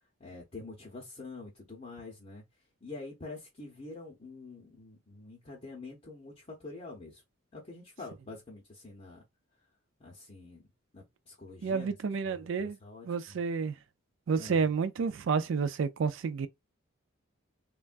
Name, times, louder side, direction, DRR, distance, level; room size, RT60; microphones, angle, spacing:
voice 1, 0.2-2.4 2.8-7.2 7.5-9.2 10.0-10.6 10.9-11.9 12.2-13.4 14.4-14.6, left 3 dB, 30° left, 0.7 m, -46 dB
voice 2, 11.6-12.8 13.1-13.7 14.3-16.5, right 5 dB, 70° right, 0.4 m, -30 dB
3.3 x 2.2 x 2.5 m
head